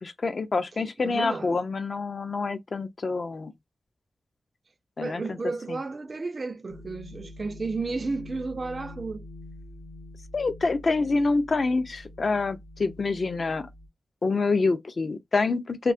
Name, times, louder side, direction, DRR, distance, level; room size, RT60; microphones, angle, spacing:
voice 1, 0.0-3.5 5.0-5.4 5.7-5.8 10.3-13.7 14.2-15.9, left 3 dB, 45° left, 0.4 m, -26 dB
voice 2, 1.0-1.5 5.0-9.2, right 3 dB, 40° right, 0.3 m, -32 dB
sound 1, 6.7-13.9, left 2 dB, 75° left, 0.7 m, -45 dB
2.7 x 2.2 x 2.4 m
wide cardioid pair, 135°, 0 cm